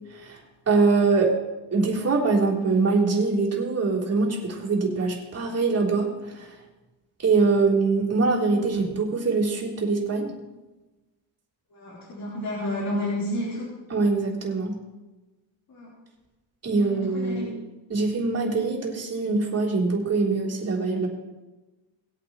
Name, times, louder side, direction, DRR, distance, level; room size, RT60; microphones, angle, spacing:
voice 1, 0.1-0.4 0.7-1.4 1.7-6.5 7.2-10.3 13.9-14.8 16.6-17.5 17.9-21.1, right 4 dB, 35° right, -3 dB, 3.6 m, -23 dB
voice 2, 11.7-13.7 15.7-15.9 16.7-17.5, left 1 dB, 50° left, -8 dB, 4.2 m, -31 dB
20.5 x 8.6 x 3.1 m, 1.1 s
cardioid pair, 135°, 45 cm